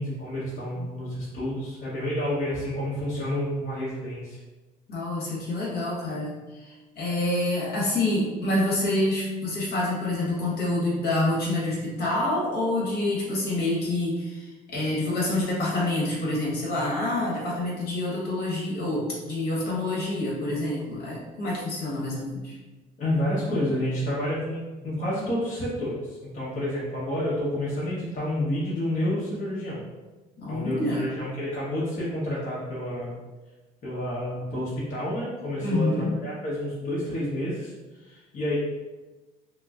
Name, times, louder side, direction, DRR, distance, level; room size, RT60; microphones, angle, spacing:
voice 1, 0.0-4.4 23.0-29.8 30.5-33.2 33.8-38.6, left 1 dB, 45° left, -8 dB, 1.1 m, -29 dB
voice 2, 4.9-22.6 30.4-31.2 35.6-36.1, left 1 dB, 65° left, -5 dB, 1.4 m, -27 dB
5.6 x 2.1 x 2.5 m, 1.2 s
cardioid pair, 110°, 17 cm